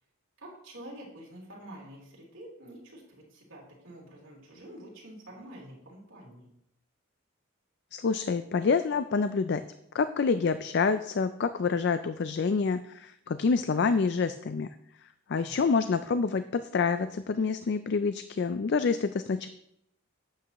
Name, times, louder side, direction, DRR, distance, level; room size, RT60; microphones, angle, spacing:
voice 1, 0.4-6.5 15.3-15.7, right 1 dB, 65° right, -4 dB, 3.6 m, -47 dB
voice 2, 7.9-9.6 9.9-14.7 15.3-19.5, left 5 dB, 55° left, 11 dB, 0.4 m, -27 dB
12.0 x 8.5 x 3.0 m, 0.77 s
head